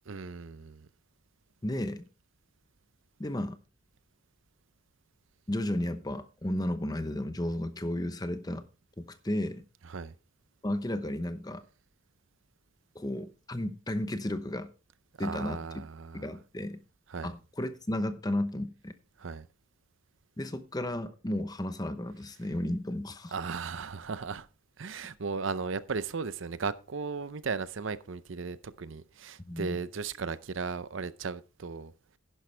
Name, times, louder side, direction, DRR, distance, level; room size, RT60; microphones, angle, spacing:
voice 1, 0.1-0.9 9.9-10.1 15.2-16.3 17.1-17.3 19.2-19.5 23.3-24.5 24.8-31.9, right 5 dB, 70° right, 0.6 m, -36 dB
voice 2, 1.6-2.1 3.2-3.6 5.5-8.6 9.0-9.6 10.6-11.6 12.9-14.7 15.2-15.6 16.1-16.8 17.2-18.9 20.4-23.3 29.5-29.8, left 1 dB, 20° left, 0.8 m, -33 dB
11.0 x 10.5 x 3.3 m
head